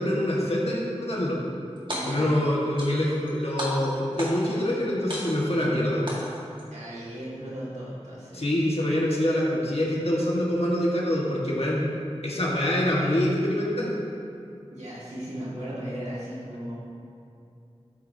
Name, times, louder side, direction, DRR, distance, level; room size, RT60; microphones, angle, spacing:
voice 1, 0.0-1.4 2.1-6.0 8.3-11.8 12.2-13.9, left 1 dB, 60° left, -5 dB, 1.7 m, -25 dB
sound 1, 1.8-2.4 2.8-3.3 3.6-4.6 5.1-5.6 6.1-6.6, equal, 45° right, 1.9 m, -34 dB
voice 2, 1.9-2.3 6.7-8.5 14.7-16.8, equal, 75° right, -8 dB, 2.1 m, -36 dB
13.0 x 8.4 x 2.8 m, 2.6 s
wide cardioid pair, 45°, 12 cm